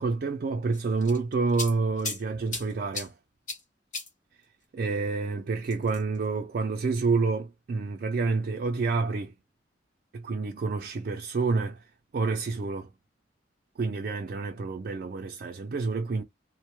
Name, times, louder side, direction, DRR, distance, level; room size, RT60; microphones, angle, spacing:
voice 1, 0.0-3.2 4.7-9.4 10.1-11.8 12.1-12.9 13.8-16.2, right 4 dB, 50° right, 0.4 m, -28 dB
sound 1, 0.7-2.2 2.5-3.1 3.5-3.6 3.9-4.1 5.6-6.2, left 3 dB, 40° left, 0.9 m, -35 dB
2.1 x 2.0 x 2.9 m
head